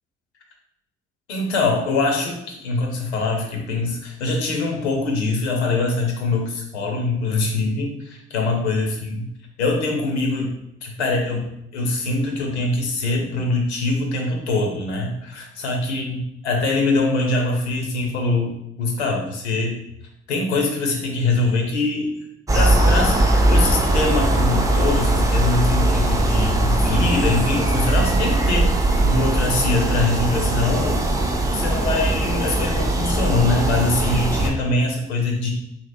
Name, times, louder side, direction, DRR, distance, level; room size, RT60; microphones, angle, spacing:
voice 1, 1.3-9.3 9.6-10.5 10.8-11.4 11.7-16.2 16.4-18.5 18.8-19.8 20.3-22.1 22.5-28.7 29.0-31.0 31.3-35.5, left 3 dB, 85° left, 1 dB, 0.5 m, -23 dB
sound 1, 22.5-34.5, right 1 dB, 10° right, 0.3 m, -20 dB
2.8 x 2.6 x 2.4 m, 0.82 s
hypercardioid pair, 45°, 32 cm